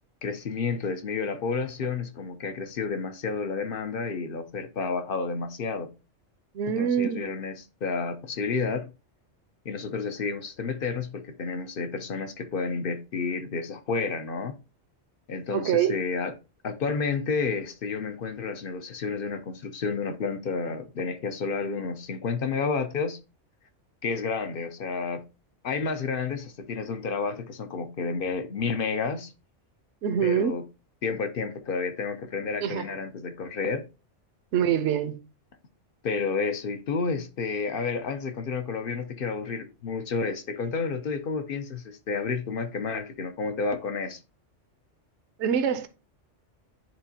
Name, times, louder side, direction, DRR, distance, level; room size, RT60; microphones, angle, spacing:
voice 1, 0.2-5.9 6.8-7.5 7.8-8.9 9.6-14.6 15.3-16.3 16.6-23.2 24.0-25.3 25.6-29.3 30.2-30.6 31.0-33.9 36.0-44.2, left 4 dB, 55° left, 0.8 m, -30 dB
voice 2, 6.5-7.3 15.5-15.9 30.0-30.5 32.6-32.9 34.5-35.2 45.4-45.9, right 8 dB, 70° right, 1.0 m, -25 dB
9.7 x 3.6 x 2.7 m
omnidirectional pair, 1.3 m